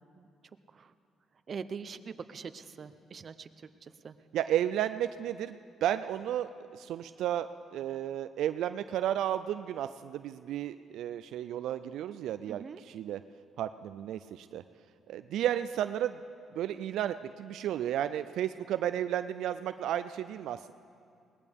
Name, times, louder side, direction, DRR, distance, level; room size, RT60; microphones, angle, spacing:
voice 1, 1.5-3.5 3.8-4.2 12.5-12.8, right 6 dB, 45° right, 11 dB, 0.7 m, -43 dB
voice 2, 4.3-13.2 13.6-14.6 15.1-16.2 16.5-20.7, right 11 dB, 80° right, 11 dB, 0.3 m, -33 dB
21.5 x 18.5 x 3.5 m, 2.4 s
cardioid pair, 90°, 0 cm